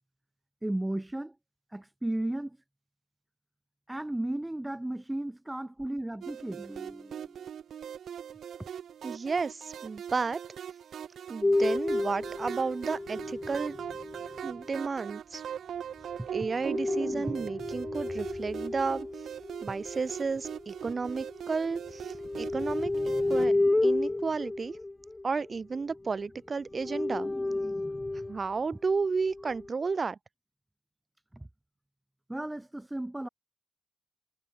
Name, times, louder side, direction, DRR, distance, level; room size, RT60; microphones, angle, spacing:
voice 1, 0.6-1.3 1.7-2.6 3.9-7.5 16.2-16.3 17.2-17.3 31.3-31.5 32.3-33.3, right 1 dB, 15° right, 2.0 m, -35 dB
sound 1, 6.2-23.5, right 9 dB, 65° right, 1.3 m, -41 dB
voice 2, 9.0-10.4 11.3-13.8 14.4-15.4 16.3-19.1 19.6-22.9 23.3-23.5 23.8-24.8 25.2-27.3 28.3-30.2, right 4 dB, 45° right, 4.1 m, -32 dB
sound 2, 11.4-14.6 16.3-21.4 21.8-26.3 26.7-28.5 29.2-29.7, left 2 dB, 20° left, 0.6 m, -31 dB
hypercardioid pair, 45°, 0 cm